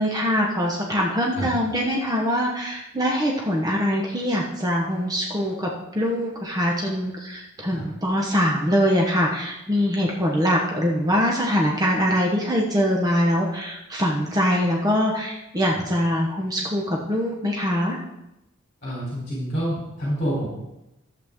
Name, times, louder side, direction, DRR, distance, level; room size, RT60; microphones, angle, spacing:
voice 1, 0.0-18.0, equal, 15° right, -1 dB, 1.0 m, -23 dB
voice 2, 18.8-20.5, equal, 30° left, -6 dB, 3.5 m, -27 dB
12.0 x 7.9 x 3.6 m, 0.92 s
head